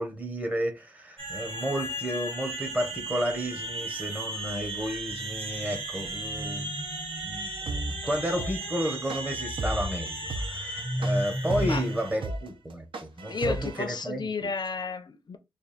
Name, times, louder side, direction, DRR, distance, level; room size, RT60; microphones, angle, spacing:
voice 1, 0.0-6.7 7.2-7.5 8.0-12.8 13.2-14.5, equal, 15° right, 0.9 m, -32 dB
sound 1, 1.2-12.2, right 1 dB, 90° right, 1.9 m, -34 dB
sound 2, 7.7-13.8, right 2 dB, 70° right, 0.7 m, -34 dB
voice 2, 13.3-15.4, left 4 dB, 55° left, 0.5 m, -32 dB
3.4 x 2.4 x 4.0 m
wide cardioid pair, 120°, 9 cm